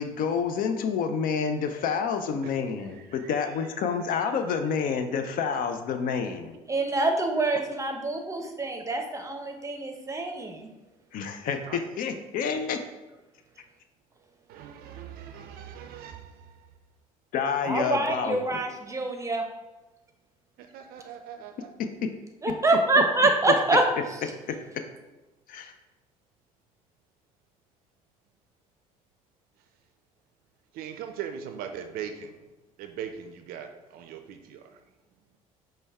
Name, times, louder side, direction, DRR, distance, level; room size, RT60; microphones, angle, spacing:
voice 1, 0.0-6.6 11.1-12.8 17.3-18.6 21.8-22.1 24.5-24.6 25.5-25.7, left 6 dB, 50° left, 8 dB, 0.4 m, -29 dB
voice 2, 2.6-3.5 11.7-11.8 14.5-16.4 20.7-21.7 30.7-32.3 32.8-34.7, right 8 dB, 55° right, 6 dB, 0.4 m, -40 dB
voice 3, 6.7-10.7 17.6-19.4 22.4-23.8, right 2 dB, 15° right, 4 dB, 0.7 m, -25 dB
5.1 x 2.2 x 3.3 m, 1.1 s
figure-of-eight pair, 55°, 18 cm